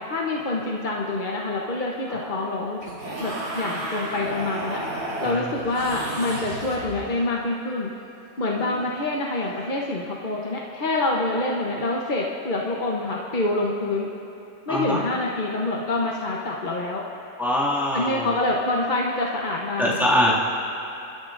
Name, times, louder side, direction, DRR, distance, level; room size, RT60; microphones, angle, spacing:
voice 1, 0.0-2.8 3.2-7.9 8.4-14.1 14.7-17.0 17.9-20.1, left 2 dB, 35° left, -2 dB, 0.9 m, -26 dB
sound 1, 2.8-7.2 9.4-9.7, right 1 dB, 65° right, 3.2 m, -32 dB
voice 2, 5.2-5.5 14.7-15.0 17.4-18.3 19.8-20.3, equal, ahead, -7 dB, 2.1 m, -23 dB
29.0 x 12.5 x 2.6 m, 2.9 s
omnidirectional pair, 1.8 m